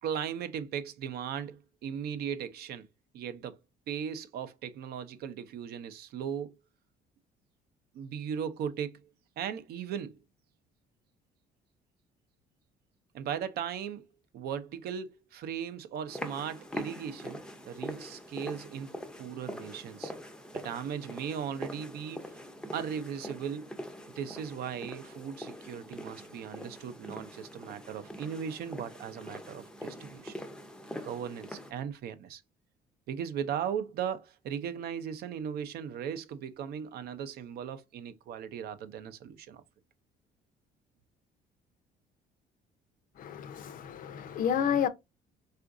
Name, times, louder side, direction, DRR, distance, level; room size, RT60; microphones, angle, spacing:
voice 1, 0.0-2.9 3.1-3.6 3.9-6.6 7.9-9.0 9.4-10.2 13.1-14.1 14.3-20.1 20.5-22.2 22.7-23.7 24.2-30.3 31.0-32.4 33.1-39.6, right 8 dB, 70° right, 0.6 m, -37 dB
sound 1, 16.1-31.7, equal, 5° left, 0.5 m, -43 dB
voice 2, 43.2-44.9, left 8 dB, 55° left, 0.5 m, -30 dB
3.7 x 2.5 x 2.4 m
cardioid pair, 110°, 17 cm